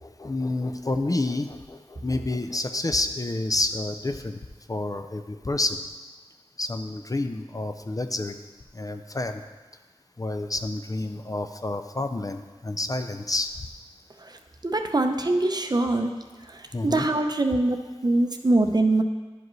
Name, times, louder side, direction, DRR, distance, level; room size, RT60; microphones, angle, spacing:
voice 1, 0.0-4.3 4.7-5.8 6.6-8.4 8.7-9.4 10.2-13.5 16.7-17.1, left 2 dB, 35° left, 7 dB, 0.4 m, -29 dB
voice 2, 14.2-16.1 16.4-17.8 18.0-19.0, right 2 dB, 40° right, 5 dB, 0.6 m, -23 dB
11.0 x 4.9 x 3.1 m, 1.3 s
wide cardioid pair, 60°, 11 cm